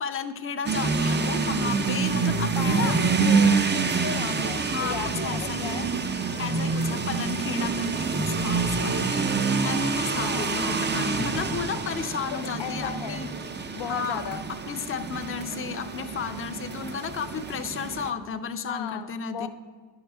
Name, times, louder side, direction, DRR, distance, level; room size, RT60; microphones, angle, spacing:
voice 1, 0.0-3.0 4.5-5.9 6.4-9.0 9.6-13.3 13.8-14.2 14.5-19.5, left 6 dB, 30° left, 8 dB, 0.5 m, -33 dB
sound 1, 0.7-18.1, right 4 dB, 25° right, 0.5 m, -27 dB
voice 2, 2.6-5.9 10.2-10.5 12.6-13.2 13.7-14.4 18.7-19.5, left 9 dB, 80° left, 9 dB, 0.5 m, -36 dB
sound 2, 4.9-7.0 7.3-13.3, right 2 dB, 75° right, 2.0 m, -48 dB
10.5 x 5.5 x 3.4 m, 1.5 s
cardioid pair, 80°, 43 cm